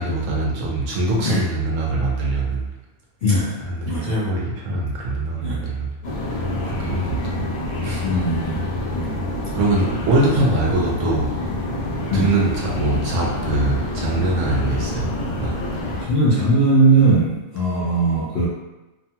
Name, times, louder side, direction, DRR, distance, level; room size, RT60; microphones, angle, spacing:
voice 1, 0.0-2.7 3.7-5.9 6.6-7.2 7.8-8.1 9.5-11.3 12.1-15.5, right 2 dB, 70° right, -3 dB, 0.9 m, -22 dB
voice 2, 3.2-3.6 3.9-4.2 5.4-5.7 8.0-8.6 8.9-9.1 12.1-12.3 16.0-18.5, right 2 dB, 60° left, -8 dB, 0.6 m, -19 dB
sound 1, 6.0-16.0, left 1 dB, 80° left, 1.2 m, -27 dB
2.7 x 2.2 x 2.7 m, 1.1 s
omnidirectional pair, 1.5 m